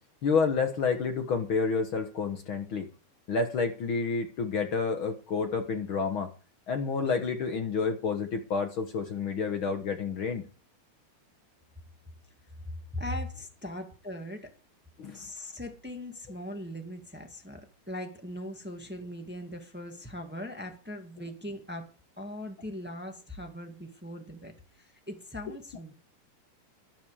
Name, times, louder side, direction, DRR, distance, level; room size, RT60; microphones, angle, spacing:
voice 1, 0.2-2.9 3.3-6.3 6.7-10.5 15.0-15.3, left 5 dB, 50° left, 1.6 m, -29 dB
voice 2, 12.6-14.5 15.1-21.9 22.2-25.9, left 1 dB, 5° right, 0.9 m, -40 dB
13.0 x 11.5 x 4.9 m
omnidirectional pair, 3.8 m